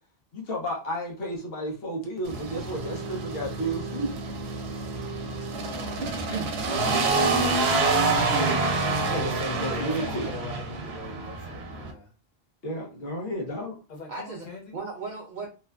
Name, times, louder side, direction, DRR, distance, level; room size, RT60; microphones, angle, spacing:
voice 1, 0.3-4.1 8.8-10.3 12.6-13.7, right 1 dB, 70° left, -1 dB, 1.1 m, -32 dB
sound 1, 2.2-11.9, right 3 dB, 85° right, 0.9 m, -27 dB
voice 2, 5.6-6.3 6.6-7.9 9.0-12.1 13.9-14.8, left 3 dB, 50° left, 0 dB, 0.7 m, -42 dB
voice 3, 14.1-15.5, right 4 dB, 55° right, 0 dB, 0.6 m, -36 dB
3.0 x 2.1 x 2.4 m, 0.32 s
omnidirectional pair, 1.0 m